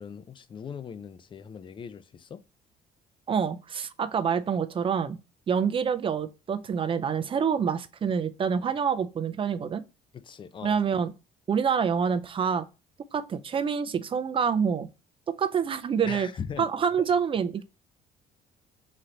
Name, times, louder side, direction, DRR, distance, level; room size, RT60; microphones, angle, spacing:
voice 1, 0.0-2.4 10.1-10.8 16.0-16.7, left 7 dB, 30° left, 0.4 m, -39 dB
voice 2, 3.3-5.2 5.5-9.8 10.6-11.1 11.5-12.6 13.1-14.9 15.3-16.3 16.6-17.6, right 7 dB, 30° right, 0.4 m, -27 dB
3.9 x 3.1 x 4.3 m
cardioid pair, 110°, 17 cm